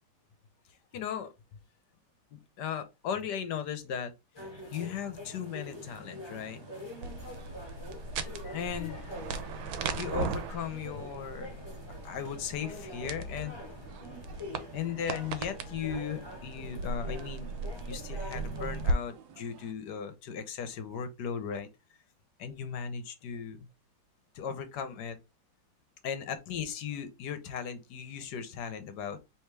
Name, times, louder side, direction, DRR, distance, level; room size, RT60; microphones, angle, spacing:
voice 1, 0.9-1.3 2.3-4.1 4.7-6.6 8.1-11.6 12.0-13.5 14.7-17.5 17.9-21.7 22.4-23.7 24.3-25.2 26.0-29.2, left 7 dB, 65° left, 1.2 m, -37 dB
sound 1, 4.3-18.9, left 1 dB, 20° left, 0.7 m, -45 dB
sound 2, 5.5-19.7, right 9 dB, 70° right, 1.0 m, -56 dB
sound 3, 7.0-18.9, right 3 dB, 85° right, 1.4 m, -38 dB
3.5 x 3.0 x 4.5 m
omnidirectional pair, 2.2 m